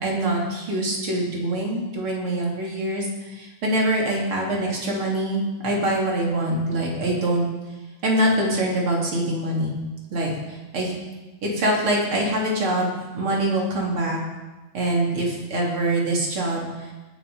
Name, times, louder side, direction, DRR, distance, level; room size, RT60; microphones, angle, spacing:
voice 1, 0.0-7.5 8.0-9.7 10.1-10.9 11.4-14.2 14.7-16.9, right 1 dB, 30° right, -2 dB, 3.2 m, -24 dB
18.5 x 11.0 x 5.5 m, 1.1 s
omnidirectional pair, 5.5 m